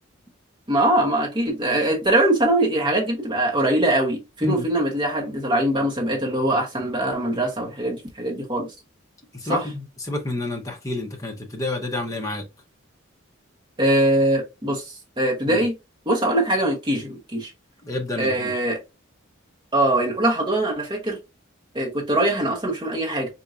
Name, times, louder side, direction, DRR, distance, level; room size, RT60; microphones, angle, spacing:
voice 1, 0.7-8.7 9.5-9.6 13.8-14.8 15.2-15.7 16.1-17.5 18.2-18.8 19.7-21.2 21.7-23.3, right 1 dB, 25° right, 0.9 m, -22 dB
voice 2, 9.3-12.4 15.5-15.6 17.8-18.6, left 2 dB, 15° left, 0.7 m, -29 dB
4.5 x 2.6 x 2.4 m
head